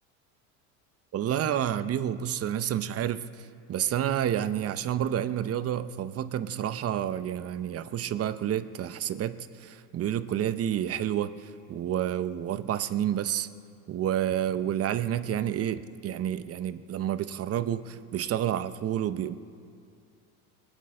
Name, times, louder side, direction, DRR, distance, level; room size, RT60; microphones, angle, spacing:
voice 1, 1.1-3.2 3.7-13.5 13.9-19.3, right 10 dB, 35° right, 13 dB, 0.7 m, -29 dB
20.0 x 9.0 x 7.5 m, 2.3 s
supercardioid pair, 100°, 40 cm